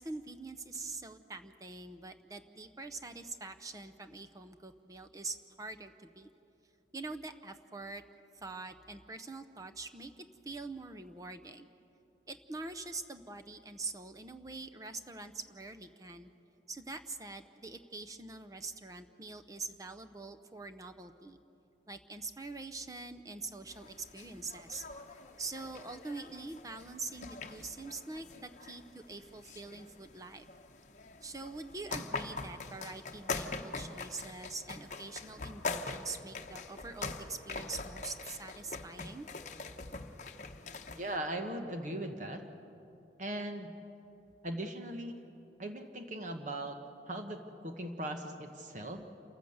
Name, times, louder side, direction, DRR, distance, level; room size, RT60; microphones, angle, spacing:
voice 1, 0.0-6.3 6.9-8.0 8.4-11.7 12.3-16.3 16.7-21.4 21.9-24.8 25.4-30.4 31.2-39.3, right 3 dB, 20° right, 7 dB, 0.7 m, -44 dB
sound 1, 23.7-41.2, left 3 dB, 45° left, 0.9 m, -43 dB
voice 2, 40.9-42.4 43.2-43.7 44.4-45.2 45.6-46.8 47.1-49.1, right 1 dB, 45° right, 5 dB, 1.2 m, -39 dB
28.0 x 14.0 x 8.0 m, 2.9 s
head